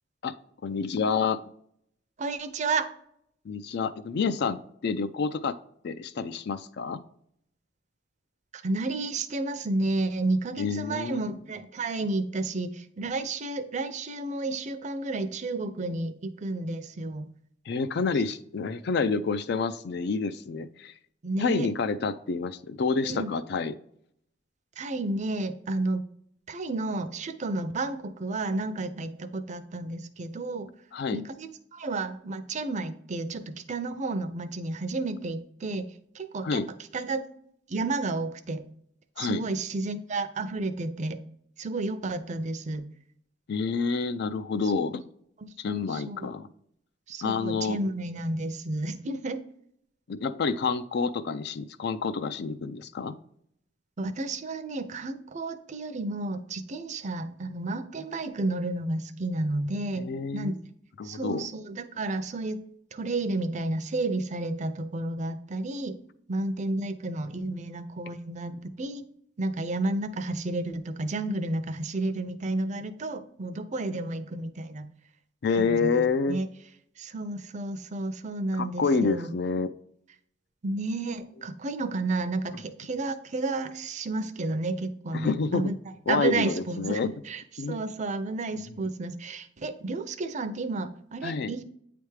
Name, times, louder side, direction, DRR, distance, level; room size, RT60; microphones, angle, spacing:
voice 1, 0.6-1.4 3.5-5.6 5.8-7.0 10.6-11.2 17.7-20.9 21.4-23.7 30.9-31.2 36.4-36.7 39.2-39.4 43.5-45.0 45.6-46.5 47.2-47.8 50.1-53.2 60.0-60.6 61.0-61.5 75.4-76.4 78.5-79.7 85.1-85.7 86.1-87.1 87.6-87.8 91.2-91.5, left 4 dB, 65° left, 12 dB, 0.4 m, -28 dB
voice 2, 2.2-2.9 8.5-17.2 21.2-21.7 23.0-23.3 24.8-26.0 26.5-30.7 31.1-33.4 33.7-35.9 36.1-36.6 36.9-37.2 37.7-38.6 39.2-41.2 41.6-42.9 45.4-46.3 47.1-49.4 54.0-60.5 61.0-62.6 62.9-66.0 66.3-68.5 68.8-69.0 69.4-74.9 75.6-76.5 77.0-79.3 80.6-85.7 86.1-91.6, right 2 dB, 40° right, 11 dB, 0.5 m, -31 dB
8.7 x 3.4 x 3.2 m, 0.69 s
head